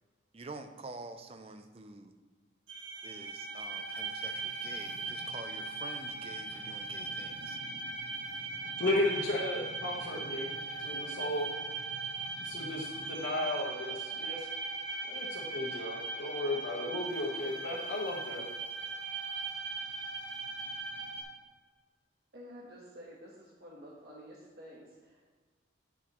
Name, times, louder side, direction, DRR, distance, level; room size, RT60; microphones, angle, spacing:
voice 1, 0.3-2.1 3.0-7.6, right 3 dB, 30° right, 8 dB, 0.5 m, -47 dB
sound 1, 2.7-21.2, right 3 dB, 90° right, 1.7 m, -39 dB
voice 2, 8.8-11.5 12.4-14.5 15.0-18.4, left 1 dB, 80° left, -4 dB, 1.2 m, -34 dB
voice 3, 22.3-25.2, equal, 55° right, -4 dB, 1.2 m, -50 dB
9.1 x 7.1 x 3.0 m, 1.4 s
head